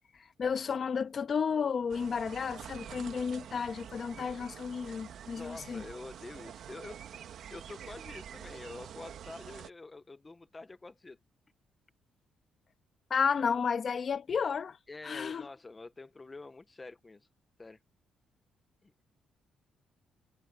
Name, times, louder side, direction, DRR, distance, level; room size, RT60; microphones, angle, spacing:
voice 1, 0.2-5.8 13.1-14.8 15.0-15.5, left 6 dB, 45° left, 1.5 m, -32 dB
sound 1, 1.9-9.7, right 9 dB, 65° right, 2.1 m, -47 dB
voice 2, 5.3-7.0 7.5-11.2 14.9-17.3 17.6-17.8 18.8-18.9, left 3 dB, 20° left, 1.1 m, -47 dB
cardioid pair, 90°, 0 cm